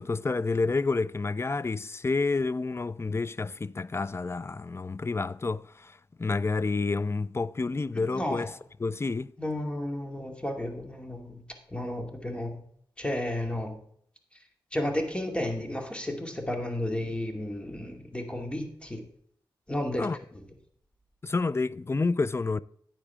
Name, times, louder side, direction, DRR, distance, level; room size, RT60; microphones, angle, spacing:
voice 1, 0.0-8.5 8.8-9.3 20.0-20.2 21.2-22.6, left 3 dB, 30° left, 0.4 m, -29 dB
voice 2, 9.4-11.4 11.7-12.6 13.0-13.8 14.7-19.0 19.7-20.1 20.3-20.4, left 1 dB, 10° left, 2.4 m, -32 dB
10.0 x 9.0 x 3.6 m
cardioid pair, 70°, 9 cm